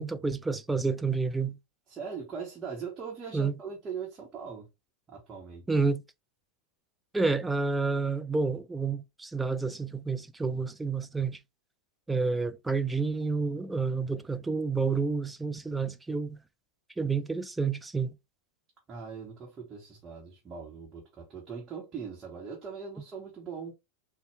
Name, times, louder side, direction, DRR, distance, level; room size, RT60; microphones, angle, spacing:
voice 1, 0.0-1.6 3.3-3.5 5.7-6.0 7.1-11.4 12.1-16.4 17.0-18.1, right 4 dB, 10° right, 0.3 m, -29 dB
voice 2, 1.9-4.7 5.1-5.8 18.9-23.7, right 6 dB, 25° right, 1.0 m, -40 dB
4.1 x 2.2 x 3.2 m
figure-of-eight pair, 90°, 0 cm